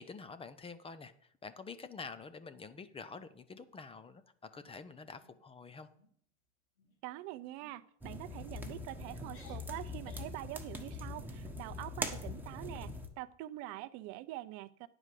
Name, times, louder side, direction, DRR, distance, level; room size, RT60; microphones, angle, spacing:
voice 1, 0.0-4.2 4.5-5.9, left 4 dB, 15° left, 12 dB, 0.6 m, -48 dB
sound 1, 3.6-4.1 4.5-4.8 5.1-5.4 5.8-6.1 6.8-7.1 7.6-7.8 8.5-8.9 9.2-10.4, left 5 dB, 90° left, 2.8 m, -61 dB
voice 2, 7.0-14.9, right 15 dB, 55° right, 15 dB, 0.7 m, -45 dB
sound 2, 8.0-13.1, left 1 dB, 5° right, 1.2 m, -42 dB
9.6 x 4.9 x 7.5 m, 0.64 s
hypercardioid pair, 105°, 33 cm